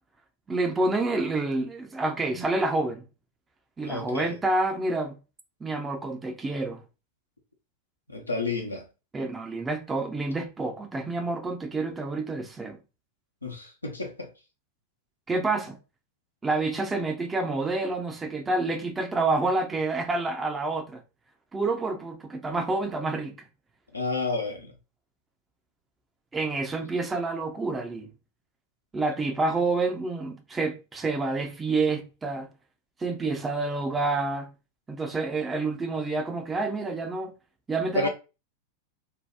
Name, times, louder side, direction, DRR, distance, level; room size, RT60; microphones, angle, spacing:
voice 1, 0.5-3.0 3.8-5.2 5.6-6.8 9.1-12.8 15.3-15.8 16.4-21.0 21.5-23.4 26.3-28.1 28.9-32.5 33.0-34.5 34.9-37.3 37.7-38.1, right 3 dB, 15° right, 0.6 m, -28 dB
voice 2, 3.8-4.4 8.1-8.9 13.4-14.3 23.9-24.7 37.9-38.1, left 3 dB, 80° left, 0.8 m, -30 dB
2.8 x 2.2 x 3.4 m
figure-of-eight pair, 90°, 0 cm